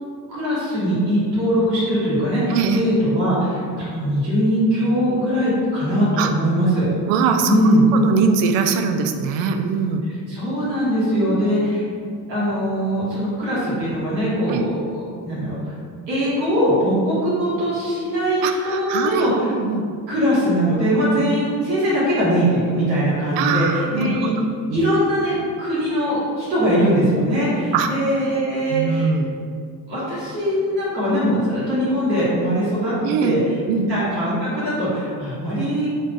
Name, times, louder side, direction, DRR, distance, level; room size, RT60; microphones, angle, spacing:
voice 1, 0.3-6.9 7.4-7.8 10.3-11.9 12.3-14.8 15.2-15.7 16.1-19.5 20.1-24.3 24.7-29.1 29.9-32.9 33.2-33.5 33.9-35.9, equal, 90° right, -10 dB, 1.3 m, -21 dB
voice 2, 2.5-2.8 6.2-6.3 7.1-7.6 7.9-10.0 11.1-11.6 14.5-14.7 18.4-19.8 21.2-21.3 23.4-24.9 27.7-27.9 28.7-29.3 33.0-33.4 33.7-33.9, right 6 dB, 60° right, 6 dB, 0.5 m, -22 dB
3.8 x 2.5 x 3.7 m, 2.2 s
hypercardioid pair, 50°, 50 cm